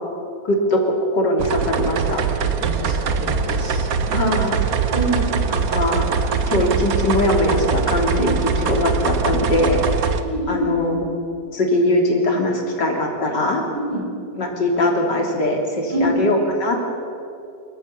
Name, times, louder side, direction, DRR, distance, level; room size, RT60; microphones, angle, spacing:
voice 1, 0.4-2.3 4.1-4.7 5.5-6.1 6.5-9.8 10.5-11.0 11.5-13.6 14.4-16.9, left 1 dB, 85° left, 0 dB, 4.1 m, -21 dB
sound 1, 1.4-10.2, right 5 dB, 60° right, 1.4 m, -22 dB
voice 2, 2.6-3.9 4.9-5.3 8.1-8.2 10.2-10.7 13.9-14.0 15.9-16.1, right 1 dB, 75° right, 0 dB, 5.4 m, -26 dB
27.0 x 14.5 x 8.3 m, 2.6 s
omnidirectional pair, 1.8 m